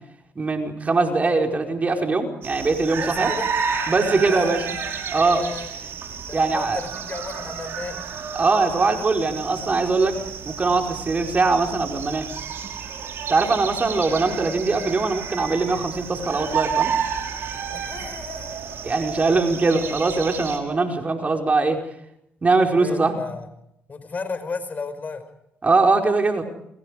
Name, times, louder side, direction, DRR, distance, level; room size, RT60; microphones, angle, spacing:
voice 1, 0.3-3.3 3.9-4.7 5.1-5.4 6.3-6.8 8.4-10.2 10.4-12.3 13.3-16.9 18.8-21.8 22.4-23.2 25.6-26.4, right 3 dB, 30° right, 3 dB, 5.0 m, -21 dB
sound 1, 2.4-20.6, right 6 dB, 60° right, 5.5 m, -31 dB
voice 2, 3.0-3.5 4.2-4.6 5.3-5.7 6.3-8.1 17.7-18.7 22.8-23.5 23.9-25.2, left 4 dB, 35° left, 11 dB, 5.4 m, -34 dB
29.0 x 26.5 x 5.1 m, 0.78 s
supercardioid pair, 65°, 5 cm